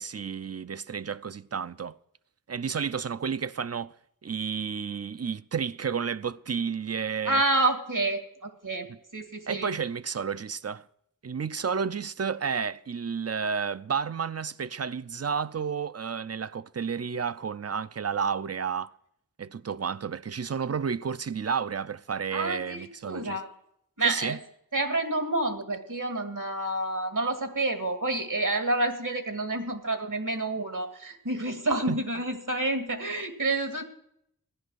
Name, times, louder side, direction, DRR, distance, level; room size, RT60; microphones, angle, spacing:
voice 1, 0.0-2.0 2.5-3.9 4.2-7.4 9.5-10.8 11.2-18.9 19.4-23.4 24.0-24.4 31.9-32.0, right 6 dB, 50° right, 0.5 m, -31 dB
voice 2, 7.3-8.9 9.1-9.7 22.3-23.5 24.0-24.4 24.7-33.8, right 2 dB, 65° right, 2.1 m, -28 dB
15.5 x 10.5 x 6.3 m
wide cardioid pair, 45°, 33 cm